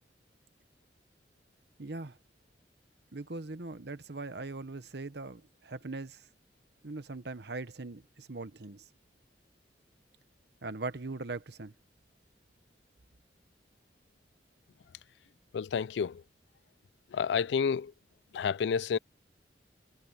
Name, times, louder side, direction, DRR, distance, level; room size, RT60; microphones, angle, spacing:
voice 1, 1.8-2.2 3.1-6.3 6.8-8.8 10.6-11.7, right 3 dB, 65° right, 1.0 m, -40 dB
voice 2, 15.5-16.2 17.1-17.9 18.3-19.0, left 6 dB, 75° left, 0.3 m, -30 dB
head